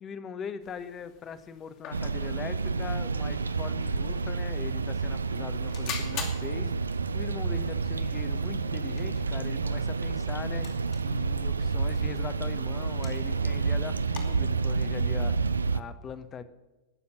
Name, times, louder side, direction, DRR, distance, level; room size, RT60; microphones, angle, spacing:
voice 1, 0.0-6.7 7.1-10.7 11.0-15.3 15.7-16.4, left 6 dB, 25° left, 13 dB, 1.0 m, -40 dB
sound 1, 0.6-14.7, left 6 dB, 45° left, 2.5 m, -46 dB
sound 2, 1.9-15.8, right 4 dB, 75° right, 0.5 m, -29 dB
19.0 x 7.1 x 6.3 m, 1.1 s
figure-of-eight pair, 90°, 0 cm